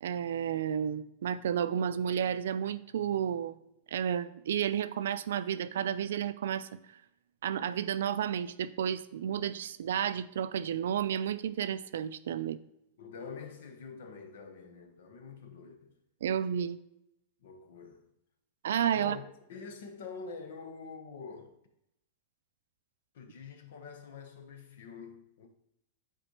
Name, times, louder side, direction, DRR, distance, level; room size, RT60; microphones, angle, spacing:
voice 1, 0.0-3.6 3.9-6.8 7.4-12.6 16.2-16.8 18.6-19.2, right 9 dB, 85° right, 0.4 m, -31 dB
voice 2, 13.0-16.0 17.4-18.0 18.9-19.2 19.5-21.6 23.1-25.5, left 5 dB, 70° left, 1.1 m, -46 dB
8.9 x 4.2 x 3.2 m
supercardioid pair, 165°, 0 cm